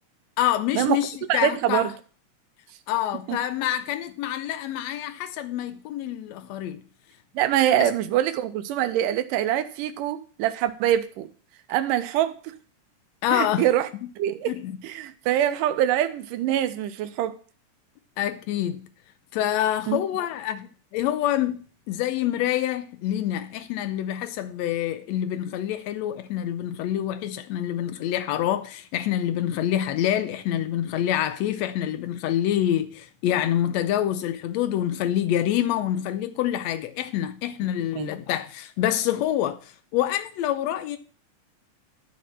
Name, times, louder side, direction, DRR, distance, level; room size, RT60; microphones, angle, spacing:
voice 1, 0.4-1.9 2.9-6.8 7.8-7.9 13.2-13.7 14.5-14.8 18.2-18.8 19.3-21.6 21.9-41.0, left 11 dB, 80° left, 1.5 m, -26 dB
voice 2, 1.3-1.9 3.3-3.4 7.4-11.3 11.7-12.4 13.3-13.9 14.2-14.5 14.8-17.4 19.9-20.0 38.0-38.1, right 11 dB, 85° right, 2.2 m, -24 dB
12.0 x 4.3 x 7.3 m
omnidirectional pair, 3.7 m